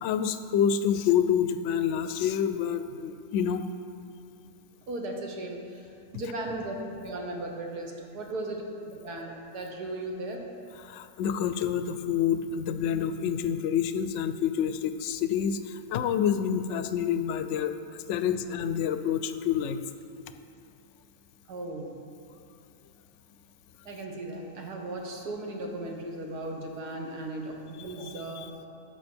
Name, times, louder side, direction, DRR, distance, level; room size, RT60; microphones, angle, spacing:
voice 1, 0.0-3.6 10.8-17.7 18.1-19.8 28.0-28.5, left 8 dB, 70° left, 10 dB, 0.7 m, -28 dB
voice 2, 4.9-10.5 21.5-22.0 23.9-28.6, right 1 dB, 85° right, 1 dB, 1.8 m, -37 dB
12.0 x 7.5 x 4.4 m, 2.6 s
omnidirectional pair, 1.6 m